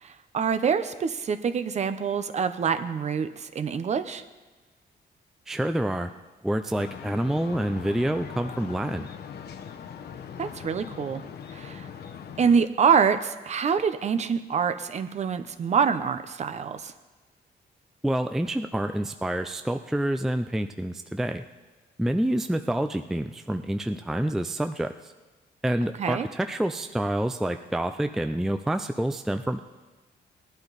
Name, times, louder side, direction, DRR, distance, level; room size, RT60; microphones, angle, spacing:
voice 1, 0.0-4.2 10.4-11.2 11.5-11.9 12.4-16.9 26.0-26.3, right 6 dB, 40° right, 11 dB, 0.7 m, -25 dB
voice 2, 5.5-6.1 6.4-9.1 18.0-21.4 22.0-24.9 25.6-29.6, right 1 dB, ahead, 7 dB, 0.4 m, -27 dB
sound 1, 6.8-12.6, left 7 dB, 70° left, 1.0 m, -41 dB
19.0 x 11.5 x 4.0 m, 1.2 s
wide cardioid pair, 170°, 18 cm